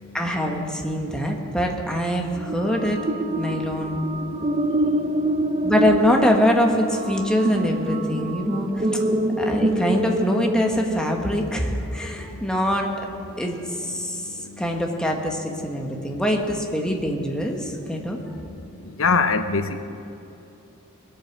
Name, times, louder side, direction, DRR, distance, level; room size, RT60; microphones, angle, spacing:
voice 1, 0.1-3.0 3.4-4.0 5.6-8.9 9.4-12.9 13.4-18.2, equal, 5° left, 1 dB, 1.3 m, -24 dB
sound 1, 2.3-11.7, right 1 dB, 30° right, 0.6 m, -26 dB
voice 2, 19.0-19.8, left 4 dB, 85° left, 9 dB, 0.7 m, -21 dB
20.5 x 8.7 x 6.0 m, 2.8 s
head